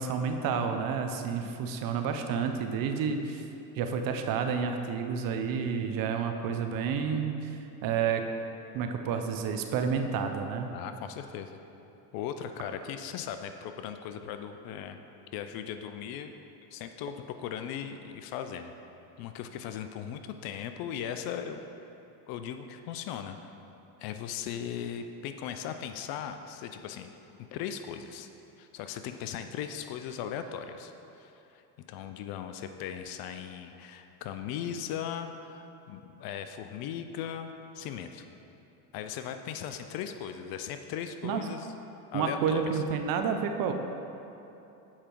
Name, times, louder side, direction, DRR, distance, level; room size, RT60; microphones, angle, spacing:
voice 1, 0.0-3.4 3.8-7.4 7.8-8.2 8.7-10.7 41.2-41.4 42.1-43.7, right 6 dB, 45° right, 6 dB, 0.6 m, -30 dB
voice 2, 10.7-11.5 12.1-15.0 15.3-16.3 16.7-18.7 19.2-21.6 22.3-23.5 24.0-27.1 27.5-28.3 28.6-30.9 31.2-31.6 31.9-37.5 37.7-38.2 38.9-41.7 42.1-42.8, left 8 dB, 50° left, 8 dB, 0.5 m, -38 dB
7.3 x 4.9 x 4.5 m, 2.9 s
supercardioid pair, 95°, 48 cm